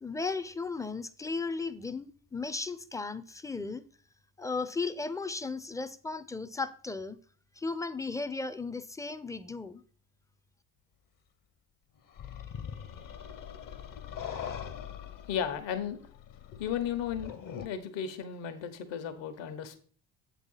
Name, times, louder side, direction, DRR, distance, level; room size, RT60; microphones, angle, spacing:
voice 1, 0.0-3.8 4.4-7.2 7.6-9.8, left 4 dB, 5° left, 0.5 m, -35 dB
sound 1, 12.2-17.7, left 8 dB, 40° left, 0.9 m, -42 dB
voice 2, 15.3-16.0 16.6-17.3 17.6-19.8, left 8 dB, 60° left, 1.2 m, -34 dB
7.8 x 4.1 x 5.6 m
hypercardioid pair, 65°, 50 cm